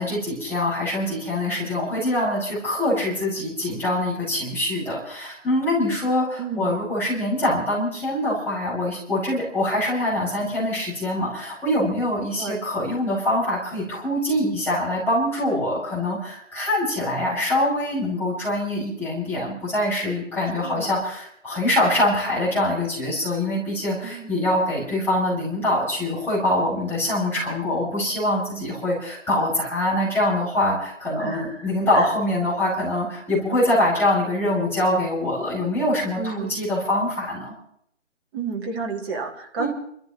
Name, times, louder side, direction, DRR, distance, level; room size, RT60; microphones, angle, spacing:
voice 1, 0.0-37.5 39.6-39.7, left 1 dB, 5° left, -9 dB, 5.5 m, -24 dB
voice 2, 6.4-6.8 12.4-12.6 20.6-20.9 24.0-24.4 31.2-32.1 36.2-36.7 38.3-39.7, right 4 dB, 20° right, 0 dB, 1.7 m, -31 dB
29.5 x 14.5 x 3.1 m, 0.70 s
figure-of-eight pair, 150°, 38 cm